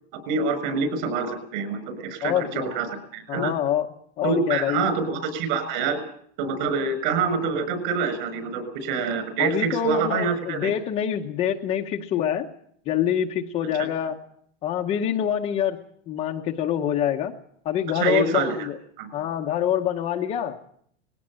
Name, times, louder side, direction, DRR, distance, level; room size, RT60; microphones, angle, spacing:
voice 1, 0.3-2.9 3.1-3.5 4.2-6.0 6.4-10.7 17.9-18.7 19.0-19.1, right 5 dB, 45° right, 11 dB, 6.4 m, -26 dB
voice 2, 2.2-2.7 3.3-3.9 4.2-4.9 9.4-12.5 12.9-14.2 14.6-15.8 16.1-17.3 17.6-18.8 19.1-20.6, left 10 dB, 20° left, 1 dB, 0.8 m, -25 dB
21.0 x 17.0 x 8.8 m, 0.65 s
supercardioid pair, 180°, 34 cm